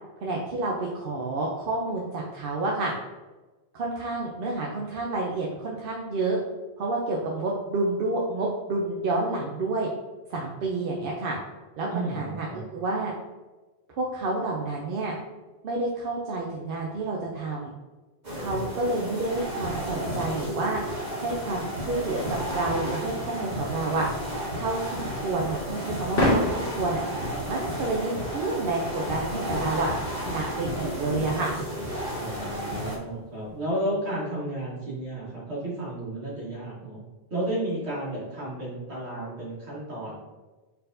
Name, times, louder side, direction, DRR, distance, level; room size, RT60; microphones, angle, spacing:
voice 1, 0.2-2.9 3.7-6.4 6.8-9.9 10.3-11.4 11.8-12.5 12.7-13.1 13.9-15.1 15.6-17.7 18.3-20.8 21.2-24.1 24.5-27.0 27.5-29.9 30.3-31.5, right 2 dB, 65° right, -2 dB, 0.7 m, -29 dB
voice 2, 11.9-12.6 32.1-37.0 37.3-40.1, right 1 dB, 90° right, -6 dB, 1.6 m, -32 dB
sound 1, 18.2-33.0, equal, 45° right, 1.1 m, -32 dB
sound 2, 23.6-33.6, left 1 dB, 65° left, 1.2 m, -34 dB
4.2 x 4.1 x 2.6 m, 1.2 s
omnidirectional pair, 1.1 m